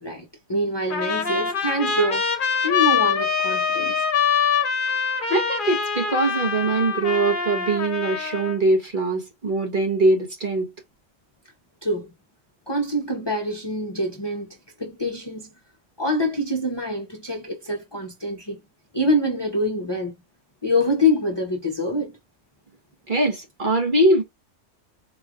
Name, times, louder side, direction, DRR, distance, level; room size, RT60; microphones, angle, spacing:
voice 1, 0.0-2.3 2.6-3.9 11.8-12.1 12.7-15.5 16.0-18.6 18.9-20.1 20.6-22.1, left 1 dB, 25° left, 0.8 m, -25 dB
Trumpet, 0.9-8.6, left 6 dB, 45° left, 1.0 m, -24 dB
voice 2, 5.3-10.7 23.1-24.2, right 2 dB, 45° right, 1.5 m, -22 dB
4.3 x 3.2 x 2.5 m
omnidirectional pair, 1.3 m